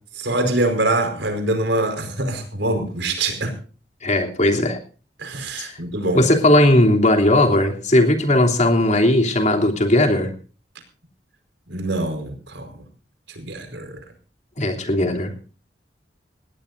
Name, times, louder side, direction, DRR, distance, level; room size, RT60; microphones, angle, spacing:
voice 1, 0.2-3.5 5.2-6.3 11.7-12.8 13.3-14.0, right 2 dB, 80° right, 6 dB, 4.8 m, -24 dB
voice 2, 4.0-4.8 5.6-5.7 6.1-10.3 14.6-15.3, left 1 dB, 45° left, 2 dB, 3.2 m, -17 dB
19.0 x 18.0 x 2.7 m, 0.37 s
head